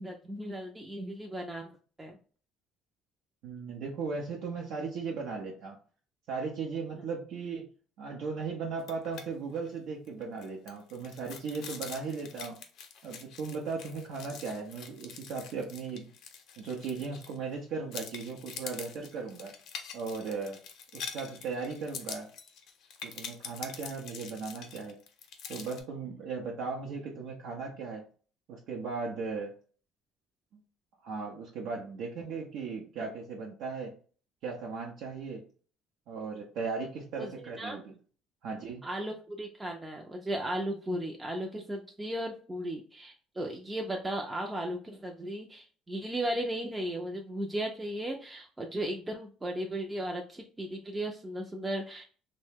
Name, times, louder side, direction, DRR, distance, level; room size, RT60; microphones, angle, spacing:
voice 1, 0.0-2.2 37.2-37.3 37.6-37.8 38.8-52.1, right 1 dB, 15° right, 1 dB, 0.4 m, -36 dB
voice 2, 3.4-5.8 6.3-7.7 8.0-12.6 13.0-16.1 16.6-19.5 19.9-20.6 20.9-22.3 23.0-25.0 25.5-28.0 28.5-29.5 31.0-34.0 34.4-35.5 36.1-37.9 38.4-38.9, right 4 dB, 70° right, -1 dB, 0.6 m, -37 dB
sound 1, 8.8-9.3 9.6-9.7 10.1-17.5 17.9-25.8, left 6 dB, 65° left, 0.6 m, -45 dB
2.7 x 2.1 x 3.4 m, 0.41 s
cardioid pair, 105°, 0 cm